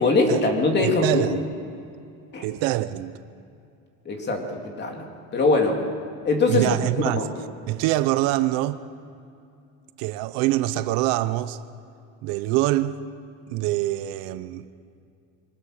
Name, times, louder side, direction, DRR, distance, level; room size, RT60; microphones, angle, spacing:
voice 1, 0.0-1.3 2.3-2.4 4.0-5.8 6.2-6.7 7.0-7.3, left 3 dB, 30° left, 2.9 m, -22 dB
voice 2, 0.8-1.5 2.4-3.1 6.5-7.2 7.7-8.8 10.0-11.6 12.2-13.0 13.5-14.6, right 15 dB, 70° right, 0.9 m, -24 dB
25.0 x 18.5 x 6.6 m
cardioid pair, 145°, 36 cm